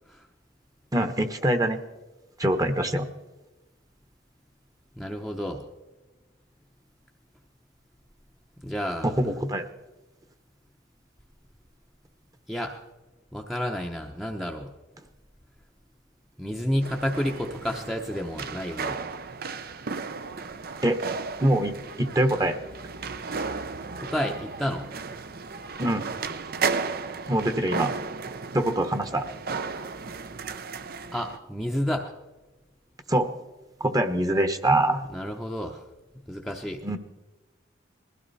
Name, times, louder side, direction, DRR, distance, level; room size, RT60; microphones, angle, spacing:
voice 1, 0.9-1.8 2.4-3.1 9.0-9.6 20.8-21.0 21.4-22.6 25.8-26.1 27.3-27.9 28.5-29.2 33.1-33.3 33.8-35.0 36.8-37.0, right 1 dB, 20° right, 9 dB, 1.1 m, -24 dB
voice 2, 5.0-5.6 8.6-9.2 12.5-12.8 13.3-14.7 16.4-19.0 24.0-24.9 31.1-32.1 35.1-35.8 36.3-36.8, equal, ahead, 1 dB, 0.8 m, -30 dB
sound 1, 16.8-31.4, right 4 dB, 50° right, 0.7 m, -34 dB
21.0 x 15.5 x 4.2 m, 1.1 s
head